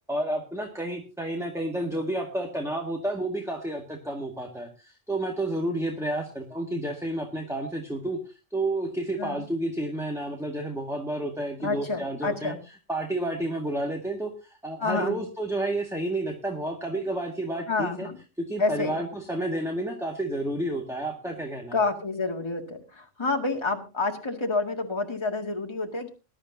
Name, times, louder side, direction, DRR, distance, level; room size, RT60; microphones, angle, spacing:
voice 1, 0.1-12.5 12.9-18.1 18.5-21.8, right 1 dB, ahead, 2 dB, 1.9 m, -30 dB
voice 2, 11.6-12.6 14.8-15.2 17.7-18.2 18.6-19.0 21.7-26.1, left 3 dB, 25° left, 2 dB, 2.1 m, -28 dB
20.5 x 11.5 x 2.8 m, 0.30 s
omnidirectional pair, 1.2 m